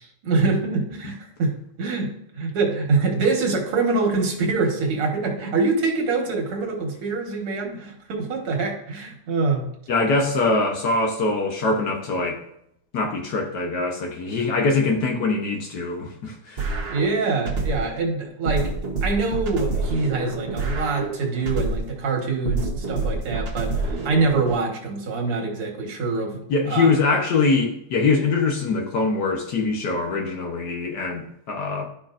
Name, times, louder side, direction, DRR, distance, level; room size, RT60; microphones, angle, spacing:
voice 1, 0.0-9.7 16.9-18.7 19.0-26.4 26.7-26.9, right 3 dB, 80° right, 1 dB, 2.3 m, -24 dB
voice 2, 9.9-12.4 12.9-16.8 26.5-31.9, left 3 dB, 60° left, 1 dB, 1.3 m, -23 dB
sound 1, 16.6-18.0 18.5-22.0 22.5-24.6, right 3 dB, 40° right, 1.0 m, -27 dB
12.0 x 5.2 x 2.5 m, 0.76 s
omnidirectional pair, 2.4 m